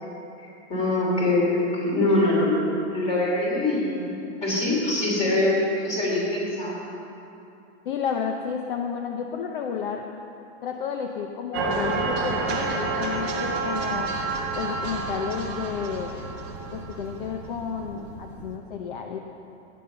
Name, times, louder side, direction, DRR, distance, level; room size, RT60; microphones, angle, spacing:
voice 1, 0.7-4.1 4.4-5.6 5.8-6.8, left 2 dB, 20° left, -4 dB, 2.8 m, -23 dB
voice 2, 7.8-10.1 10.6-14.1 14.5-16.1 16.7-19.2, left 7 dB, 45° left, 3 dB, 0.8 m, -31 dB
sound 1, 11.5-18.6, right 3 dB, 10° right, 0.4 m, -29 dB
12.5 x 9.5 x 6.9 m, 2.8 s
supercardioid pair, 180°, 35 cm